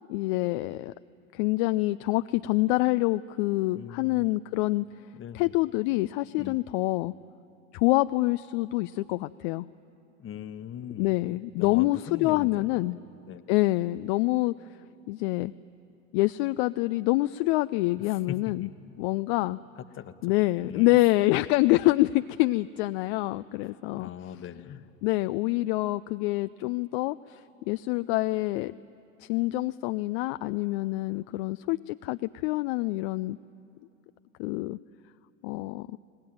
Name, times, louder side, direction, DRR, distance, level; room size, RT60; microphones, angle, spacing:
voice 1, 0.1-0.9 1.3-4.9 5.3-7.1 7.7-9.7 11.0-13.0 13.5-14.5 15.1-15.5 16.1-18.7 19.0-19.6 20.2-24.1 25.0-27.4 27.7-28.7 29.2-33.4 34.4-34.8 35.4-36.0, left 19 dB, 55° left, 12 dB, 0.5 m, -26 dB
voice 2, 3.7-4.3 5.1-5.5 6.3-6.6 10.2-11.2 11.6-12.9 13.2-13.4 18.0-18.7 19.8-20.4 20.6-21.0 23.6-24.9, left 9 dB, 30° left, 11 dB, 1.1 m, -40 dB
25.5 x 18.5 x 9.2 m, 2.8 s
hypercardioid pair, 85°, 39 cm